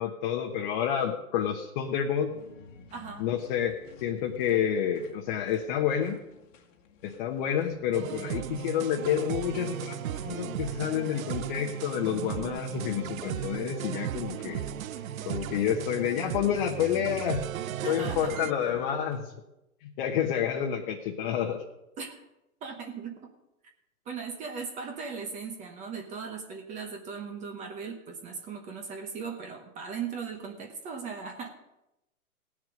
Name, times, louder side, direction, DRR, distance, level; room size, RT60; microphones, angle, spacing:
voice 1, 0.0-2.3 3.2-6.2 7.0-14.6 15.2-17.4 17.8-19.3 19.8-21.6, left 9 dB, 35° left, 1 dB, 1.1 m, -29 dB
sound 1, 2.0-19.2, left 3 dB, 60° left, 1.6 m, -49 dB
voice 2, 2.9-3.2 17.6-18.4 22.0-22.2 22.6-23.2 24.1-31.5, right 5 dB, 15° right, 4 dB, 1.0 m, -38 dB
sound 2, 7.9-18.5, right 12 dB, 65° right, 0.6 m, -36 dB
17.5 x 6.5 x 5.2 m, 0.90 s
hypercardioid pair, 140°, 44 cm